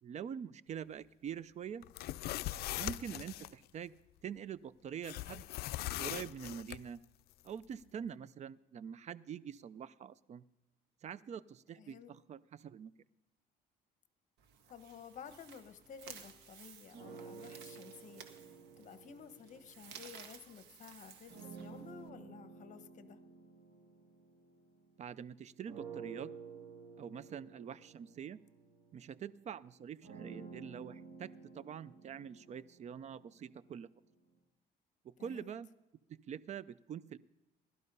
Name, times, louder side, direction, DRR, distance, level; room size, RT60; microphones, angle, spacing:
voice 1, 0.0-1.9 2.8-3.9 4.2-5.5 6.0-7.0 7.4-10.4 11.0-12.9 25.0-26.3 27.0-28.4 28.9-33.9 35.0-35.7 36.3-37.2, right 8 dB, 40° right, 19 dB, 0.5 m, -45 dB
sound 1, 1.8-3.5 5.0-6.8, left 15 dB, 70° left, 0.4 m, -40 dB
voice 2, 11.8-12.1 14.7-18.3 18.8-23.2 35.2-35.6, left 7 dB, 50° left, 12 dB, 1.1 m, -53 dB
sound 2, 14.4-22.1, right 7 dB, 80° right, 1.7 m, -56 dB
sound 3, 16.9-20.5 21.3-25.1 25.7-33.6, right 5 dB, 60° right, 5.2 m, -52 dB
17.5 x 12.0 x 5.4 m, 0.98 s
cardioid pair, 110°, 17 cm